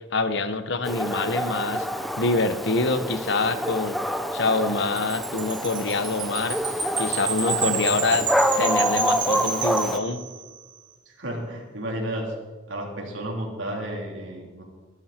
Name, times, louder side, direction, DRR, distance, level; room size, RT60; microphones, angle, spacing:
voice 1, 0.1-1.9 2.2-6.6 7.0-8.3 8.6-10.2, left 3 dB, 65° left, 10 dB, 1.2 m, -25 dB
Dog, 0.8-10.0, equal, ahead, 0.7 m, -27 dB
Wind chime, 5.0-10.6, right 4 dB, 25° right, 2.9 m, -30 dB
voice 2, 7.6-8.2 11.1-12.3 12.7-14.6, right 1 dB, 80° right, -1 dB, 3.9 m, -32 dB
23.0 x 12.5 x 4.5 m, 1.3 s
head